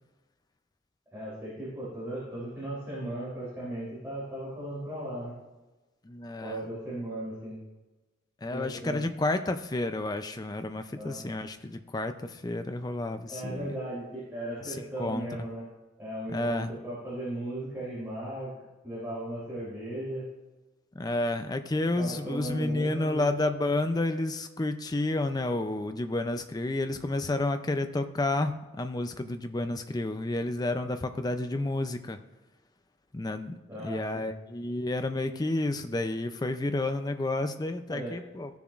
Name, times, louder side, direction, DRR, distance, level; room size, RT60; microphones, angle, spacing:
voice 1, 1.1-5.3 6.4-7.6 8.5-9.0 10.9-11.2 13.3-15.6 16.0-18.5 18.8-20.2 21.9-23.3 33.7-34.3 37.9-38.2, right 1 dB, 10° right, -10 dB, 3.3 m, -37 dB
voice 2, 6.0-6.6 8.4-13.8 14.6-15.3 16.3-16.7 20.9-32.2 33.1-33.5 33.8-38.5, left 2 dB, 20° left, 8 dB, 0.4 m, -30 dB
15.0 x 7.0 x 2.5 m, 1.1 s
head